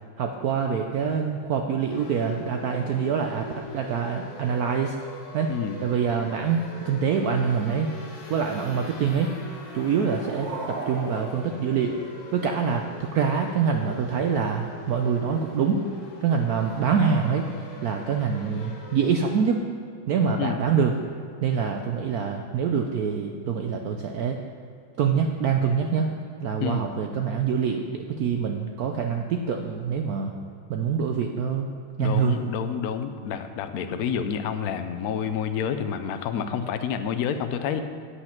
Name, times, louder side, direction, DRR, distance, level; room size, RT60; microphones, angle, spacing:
voice 1, 0.2-5.0 5.3-5.5 5.8-7.9 8.3-9.3 9.7-12.1 12.3-15.8 16.2-17.5 17.8-19.6 20.1-20.9 21.4-24.4 25.0-26.1 26.4-30.3 30.7-31.7 32.0-32.4, right 6 dB, 90° right, 4 dB, 0.8 m, -25 dB
sound 1, 1.9-19.3, left 2 dB, 40° left, 1.4 m, -43 dB
voice 2, 5.5-5.8 20.4-20.6 26.6-26.9 32.0-37.8, left 7 dB, 75° left, 8 dB, 0.8 m, -28 dB
sound 2, 9.7-12.6, right 3 dB, 50° right, 1.0 m, -38 dB
8.6 x 8.2 x 5.8 m, 2.5 s
omnidirectional pair, 2.3 m